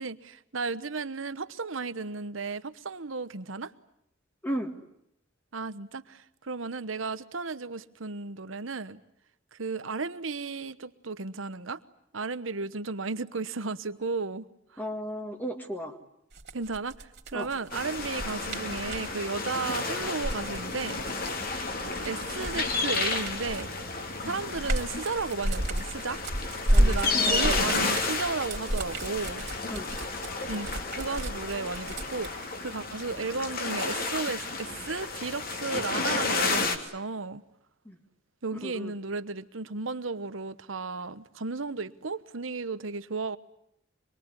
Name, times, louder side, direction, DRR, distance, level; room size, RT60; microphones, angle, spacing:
voice 1, 0.0-3.7 5.5-9.0 9.5-11.8 12.1-14.5 14.7-14.8 16.5-21.0 22.0-23.7 24.2-26.2 26.8-29.4 30.5-37.4 38.4-43.4, right 4 dB, 80° right, 1.1 m, -34 dB
voice 2, 4.4-4.8 14.8-16.0 17.3-17.5 26.7-27.6 29.7-29.9 37.9-38.0 38.6-38.9, equal, 10° left, 2.2 m, -35 dB
sound 1, 16.3-19.1 20.0-23.8 24.2-32.3, right 1 dB, 55° right, 3.4 m, -31 dB
sound 2, 17.7-36.8, left 3 dB, 50° left, 2.7 m, -32 dB
25.5 x 23.0 x 9.9 m
head